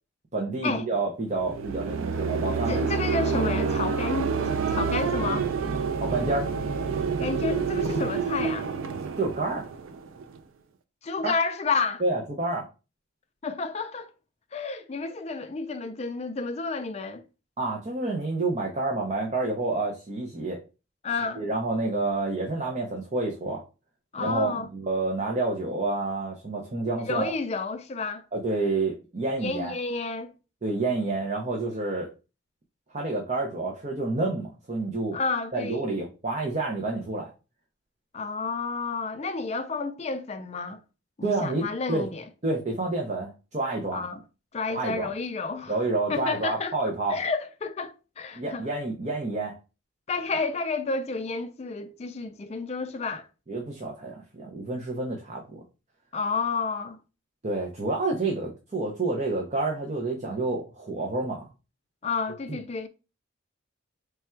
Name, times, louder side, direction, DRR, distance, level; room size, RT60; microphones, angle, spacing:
voice 1, 0.3-2.8 5.9-6.5 9.2-9.7 11.2-11.3 12.0-12.6 17.6-20.6 21.4-23.6 24.2-27.3 28.3-29.7 30.6-32.1 32.9-35.2 35.5-37.3 41.2-42.1 42.4-44.1 44.7-45.1 45.7-47.2 48.3-49.6 53.5-55.6 57.4-61.5 62.5-62.6, right 2 dB, 35° right, 0.6 m, -29 dB
sound 1, 1.4-10.4, right 5 dB, 90° right, 0.4 m, -28 dB
voice 2, 2.7-4.3 4.7-5.5 7.2-8.7 11.0-12.0 13.4-14.1 14.5-17.2 21.0-21.4 24.1-24.7 27.1-28.2 29.4-30.3 35.1-35.8 38.1-40.8 41.2-42.2 43.9-44.2 44.5-45.8 46.1-46.7 47.1-48.6 50.1-53.3 56.1-57.0 62.0-62.9, left 4 dB, 30° left, 0.4 m, -30 dB
3.3 x 2.3 x 4.3 m
head